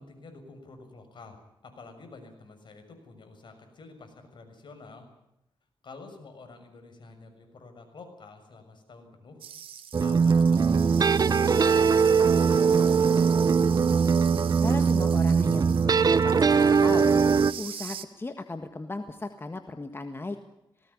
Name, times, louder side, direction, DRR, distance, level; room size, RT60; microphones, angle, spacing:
voice 1, 0.0-5.1 5.8-9.4 10.0-11.1 11.3-13.3, left 3 dB, 60° left, 5 dB, 6.6 m, -48 dB
sound 1, 9.4-18.1, right 8 dB, 80° right, 1.7 m, -42 dB
sound 2, 9.9-17.5, right 5 dB, 45° right, 0.9 m, -21 dB
voice 2, 14.6-17.2 17.6-20.4, left 2 dB, 25° left, 8 dB, 1.7 m, -36 dB
19.5 x 18.0 x 9.9 m, 0.86 s
cardioid pair, 80°, 9 cm